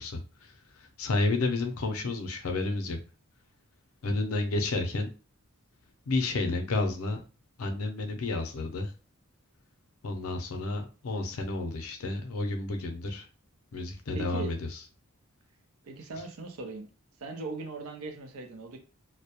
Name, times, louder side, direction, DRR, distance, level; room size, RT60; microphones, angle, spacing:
voice 1, 0.0-3.0 4.0-5.1 6.1-7.2 7.6-8.9 10.0-13.3 13.7-14.8, left 2 dB, 80° left, 4 dB, 0.5 m, -31 dB
voice 2, 14.1-14.5 15.8-16.9 17.2-18.8, right 3 dB, 85° right, 5 dB, 0.6 m, -39 dB
2.3 x 2.0 x 2.8 m, 0.34 s
head